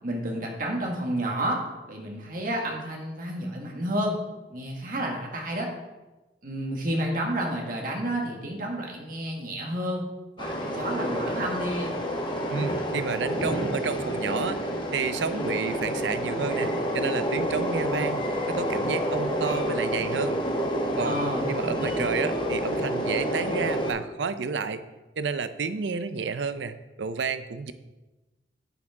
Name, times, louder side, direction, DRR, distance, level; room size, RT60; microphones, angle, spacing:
voice 1, 0.0-4.2 4.5-5.7 6.4-10.0 10.4-11.9 21.0-21.5, right 1 dB, 50° right, 0 dB, 1.7 m, -30 dB
Train, 10.4-23.9, equal, 25° left, 1.2 m, -28 dB
voice 2, 12.5-14.6 14.9-20.4 21.0-24.8 25.2-27.7, right 5 dB, 85° right, 12 dB, 0.5 m, -30 dB
8.5 x 8.4 x 3.7 m, 1.1 s
head